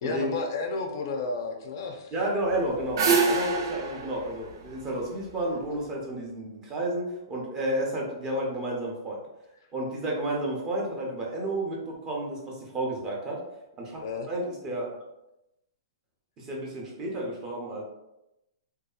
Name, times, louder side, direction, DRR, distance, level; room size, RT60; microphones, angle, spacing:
voice 1, 0.0-2.1 14.0-14.3, left 3 dB, 50° left, 4 dB, 0.4 m, -32 dB
voice 2, 2.1-9.2 9.7-13.4 13.8-14.0 14.3-15.0 16.4-17.8, right 1 dB, 20° right, -2 dB, 0.6 m, -31 dB
sound 1, 2.5-5.6, right 4 dB, 65° right, 0.5 m, -27 dB
2.6 x 2.3 x 2.3 m, 0.90 s
hypercardioid pair, 150°, 2 cm